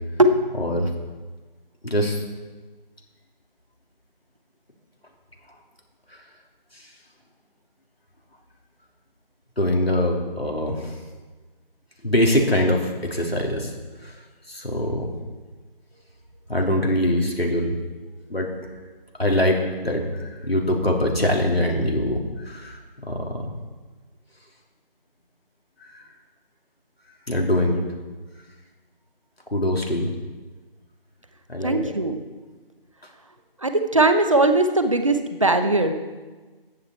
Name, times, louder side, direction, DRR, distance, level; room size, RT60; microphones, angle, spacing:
voice 1, 0.6-0.9 1.8-2.2 6.1-6.2 6.7-6.9 9.6-11.0 12.0-13.7 14.0-14.2 14.5-15.1 16.5-17.8 18.3-18.5 19.2-19.6 19.8-22.8 23.0-23.5 25.8-26.1 27.3-27.8 29.5-30.1 31.5-31.9, left 1 dB, 90° left, 0 dB, 3.3 m, -23 dB
voice 2, 31.6-32.2 33.6-35.9, right 2 dB, 35° right, 8 dB, 0.9 m, -19 dB
14.5 x 10.5 x 4.5 m, 1.3 s
figure-of-eight pair, 165°, 29 cm